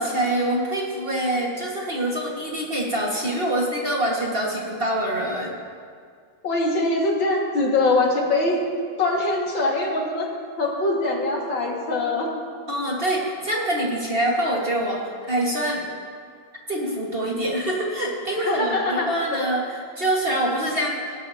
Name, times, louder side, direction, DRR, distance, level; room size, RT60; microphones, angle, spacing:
voice 1, 0.0-5.5 12.7-15.9 16.7-21.0, right 1 dB, 30° right, -3 dB, 1.8 m, -25 dB
voice 2, 6.4-8.6 9.0-10.3 10.6-12.3 18.4-19.5, left 2 dB, 70° left, -1 dB, 2.7 m, -23 dB
18.5 x 18.0 x 2.9 m, 2.1 s
omnidirectional pair, 2.2 m